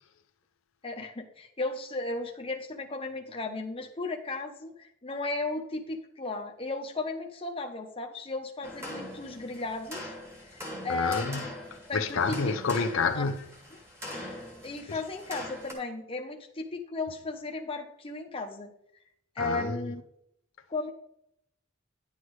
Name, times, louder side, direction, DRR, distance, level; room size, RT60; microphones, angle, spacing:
voice 1, 0.8-10.1 10.5-11.5 11.9-12.4 13.1-13.2 14.6-18.7 19.4-20.0 20.7-20.9, left 3 dB, 25° left, 0.9 m, -35 dB
sound 1, 8.6-15.7, left 1 dB, 15° right, 2.0 m, -42 dB
voice 2, 10.9-11.5 11.9-13.6 14.9-15.0 19.4-19.9, left 4 dB, 80° left, 0.6 m, -29 dB
10.5 x 8.1 x 3.2 m
head